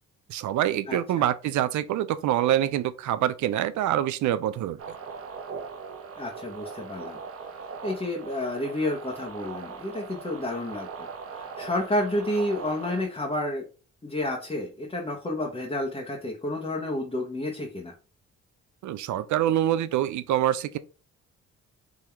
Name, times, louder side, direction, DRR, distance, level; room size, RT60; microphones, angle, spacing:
voice 1, 0.3-5.0 18.8-20.8, right 12 dB, 70° right, 0.5 m, -25 dB
voice 2, 0.9-1.2 6.2-7.2 7.8-13.6 14.0-17.9, left 1 dB, 20° left, 1.1 m, -30 dB
sound 1, 4.8-13.0, right 5 dB, 50° right, 0.9 m, -40 dB
3.9 x 2.8 x 4.4 m
cardioid pair, 90°, 30 cm